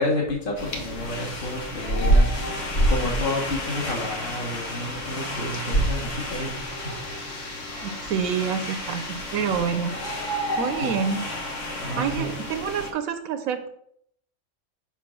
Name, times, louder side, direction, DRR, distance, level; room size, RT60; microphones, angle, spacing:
voice 1, 0.0-2.3 2.8-6.9 7.2-7.3 10.8-10.9 11.8-12.3, left 1 dB, 40° left, -1 dB, 1.8 m, -30 dB
sound 1, 0.6-12.9, equal, 65° left, 1.5 m, -28 dB
voice 2, 7.8-10.0 10.6-11.2 12.0-13.7, right 7 dB, 80° right, 9 dB, 1.1 m, -27 dB
5.3 x 4.6 x 6.2 m, 0.71 s
omnidirectional pair, 1.4 m